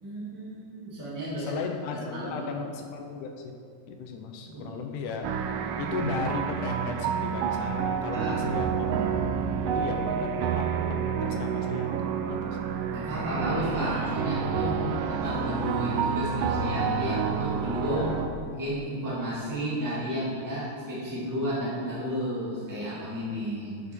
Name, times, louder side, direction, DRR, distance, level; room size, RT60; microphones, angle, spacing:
voice 1, 0.0-1.6 1.9-2.5 4.5-4.8 8.1-8.4 12.5-12.6 12.9-14.8 15.1-18.1 18.4-23.9, equal, 15° right, -9 dB, 0.5 m, -32 dB
voice 2, 1.5-3.6 3.9-5.3 5.8-9.1 9.6-10.7 11.2-12.8 14.7-15.0 17.8-18.2, left 5 dB, 80° left, 4 dB, 2.2 m, -35 dB
sound 1, 5.2-18.3, right 7 dB, 90° right, 2.2 m, -29 dB
8.1 x 7.1 x 4.3 m, 2.3 s
omnidirectional pair, 3.8 m